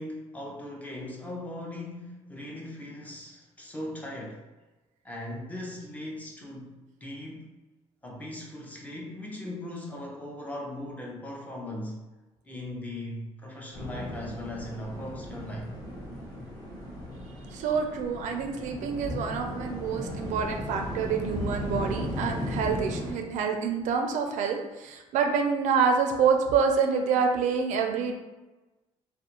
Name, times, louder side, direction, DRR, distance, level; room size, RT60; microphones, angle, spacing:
voice 1, 0.0-4.4 5.0-7.5 8.0-12.0 12.4-15.7, left 1 dB, 10° left, -2 dB, 0.5 m, -39 dB
sound 1, 13.7-23.1, equal, 30° left, 1.0 m, -36 dB
voice 2, 17.5-28.1, right 6 dB, 75° right, 4 dB, 0.4 m, -27 dB
2.4 x 2.1 x 2.9 m, 1.1 s
cardioid pair, 125°, 13 cm